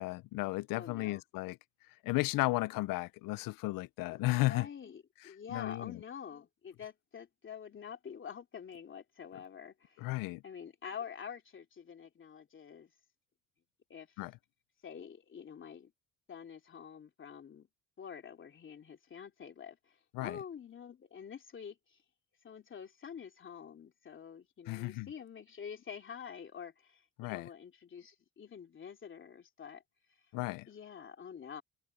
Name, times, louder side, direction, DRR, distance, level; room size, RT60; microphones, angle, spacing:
voice 1, 0.0-1.6 2.0-4.7 5.5-5.9 10.0-10.4 14.2-14.3 20.1-20.4 24.7-25.1 27.2-27.5 30.3-30.7, left 21 dB, 85° left, 0.6 m, -34 dB
voice 2, 0.7-1.2 4.0-10.1 10.4-12.9 13.9-14.2 14.8-15.9 16.3-17.7 18.0-22.0 22.4-29.8 30.1-30.3 30.7-31.6, left 7 dB, 35° left, 2.9 m, -47 dB
open air
cardioid pair, 115°, 32 cm